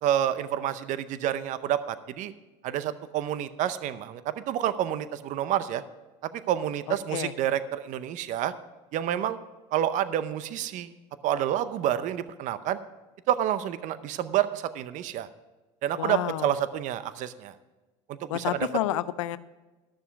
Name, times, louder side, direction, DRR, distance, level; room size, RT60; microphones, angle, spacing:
voice 1, 0.0-2.3 2.6-5.8 6.2-8.5 8.9-9.4 9.7-10.9 11.2-12.8 13.3-15.3 15.8-17.5 18.1-18.7, right 11 dB, 55° right, 14 dB, 0.7 m, -28 dB
voice 2, 16.0-16.5 18.3-19.4, left 14 dB, 85° left, 16 dB, 0.5 m, -29 dB
12.5 x 6.9 x 5.9 m, 1.2 s
supercardioid pair, 95°, 16 cm